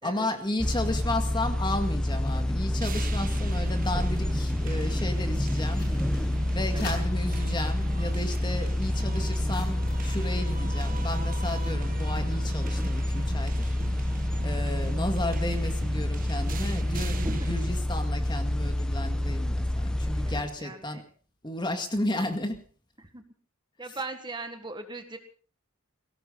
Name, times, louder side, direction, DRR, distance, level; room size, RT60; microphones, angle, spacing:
voice 1, 0.0-5.9 6.5-13.8 14.4-21.0 21.4-22.6, left 1 dB, 20° left, 6 dB, 2.1 m, -33 dB
sound 1, 0.6-20.4, left 1 dB, 5° left, 1.1 m, -28 dB
sound 2, 2.8-17.8, right 2 dB, 40° right, 1.2 m, -40 dB
sound 3, 5.3-7.1 7.8-10.2 10.5-11.2, left 2 dB, 50° left, 7.9 m, -45 dB
voice 2, 20.2-21.0 23.0-23.2 23.8-25.2, right 2 dB, 20° right, 7 dB, 1.7 m, -39 dB
20.0 x 17.5 x 4.0 m, 0.41 s
head